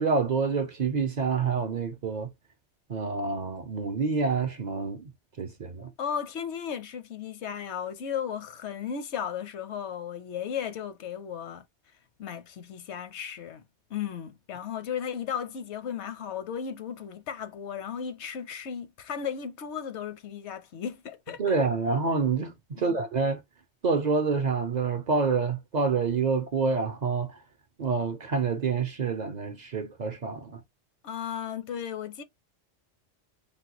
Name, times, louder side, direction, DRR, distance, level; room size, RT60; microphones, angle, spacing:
voice 1, 0.0-2.3 2.9-5.1 5.4-5.9 21.4-23.4 23.8-27.4 27.8-30.6, right 4 dB, 50° right, 0.6 m, -27 dB
voice 2, 6.0-11.6 12.2-13.6 13.9-21.6 22.8-23.0 31.0-32.2, left 8 dB, 80° left, 1.0 m, -35 dB
3.3 x 2.2 x 2.9 m
omnidirectional pair, 1.2 m